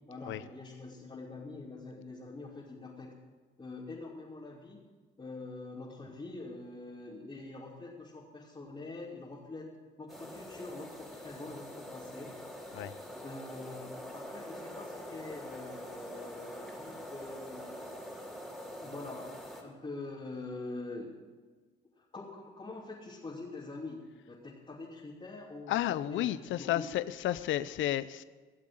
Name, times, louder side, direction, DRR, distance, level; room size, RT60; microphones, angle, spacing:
voice 1, 0.1-3.1 3.6-4.9 5.2-9.7 10.0-12.3 13.2-17.8 18.8-21.1 22.0-26.9, left 3 dB, 25° left, -7 dB, 2.9 m, -45 dB
sound 1, 10.1-19.6, equal, ahead, 3.1 m, -45 dB
voice 2, 25.7-28.2, left 13 dB, 75° left, 16 dB, 0.6 m, -32 dB
17.0 x 7.4 x 7.8 m, 1.4 s
cardioid pair, 90°, 20 cm